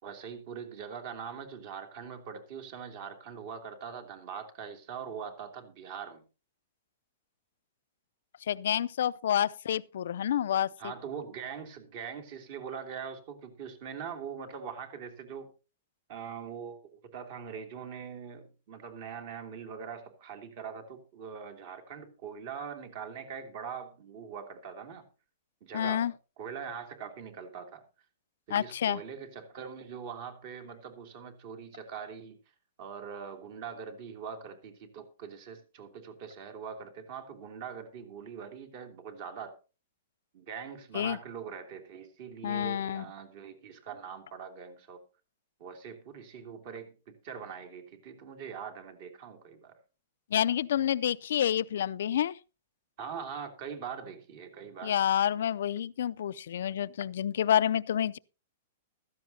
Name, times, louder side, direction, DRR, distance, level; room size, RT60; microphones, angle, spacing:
voice 1, 0.0-6.2 10.8-15.5 16.1-25.0 25.6-27.8 28.5-32.4 32.8-39.6 40.3-45.0 45.6-49.8 53.0-55.0, right 7 dB, 40° right, 2.8 m, -42 dB
voice 2, 8.5-10.7 25.7-26.1 28.5-29.0 40.9-41.2 42.4-43.1 50.3-52.4 54.8-58.2, left 10 dB, 70° left, 0.5 m, -28 dB
15.5 x 13.5 x 2.8 m
hypercardioid pair, 165°, 0 cm